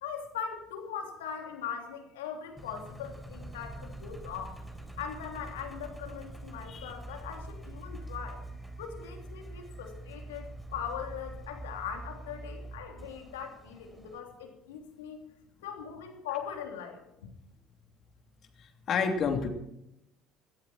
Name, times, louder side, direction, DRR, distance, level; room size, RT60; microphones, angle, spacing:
voice 1, 0.0-4.5 5.0-8.4 8.8-15.3 15.6-17.3, left 7 dB, 80° left, 3 dB, 3.1 m, -40 dB
Engine, 2.6-14.2, right 2 dB, 5° right, 3.8 m, -45 dB
voice 2, 18.6-19.5, left 5 dB, 50° left, 4 dB, 3.1 m, -30 dB
18.5 x 14.0 x 4.4 m, 0.82 s
hypercardioid pair, 60°, 0 cm